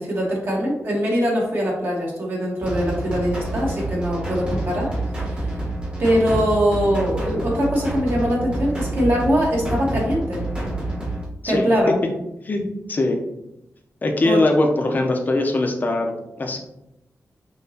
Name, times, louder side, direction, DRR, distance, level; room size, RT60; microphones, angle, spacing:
voice 1, 0.0-4.9 6.0-10.4 11.5-11.9 14.2-14.4, equal, 45° right, -3 dB, 1.4 m, -22 dB
sound 1, 2.6-11.3, right 2 dB, 20° right, 1.2 m, -28 dB
voice 2, 14.0-16.6, left 2 dB, 35° left, 3 dB, 0.7 m, -21 dB
5.6 x 3.1 x 2.8 m, 0.86 s
wide cardioid pair, 150°, 5 cm